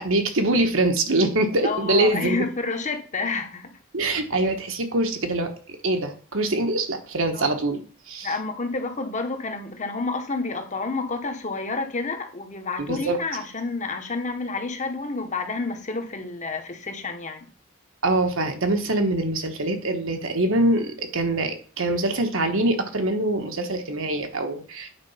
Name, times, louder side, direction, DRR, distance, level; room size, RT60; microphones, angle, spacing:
voice 1, 0.0-2.4 3.9-7.8 8.1-8.3 12.9-13.2 18.0-24.9, right 2 dB, 75° right, 1.4 m, -24 dB
voice 2, 1.6-3.7 7.3-7.6 8.2-17.5, left 3 dB, 35° left, 1.2 m, -29 dB
8.8 x 4.5 x 5.7 m
head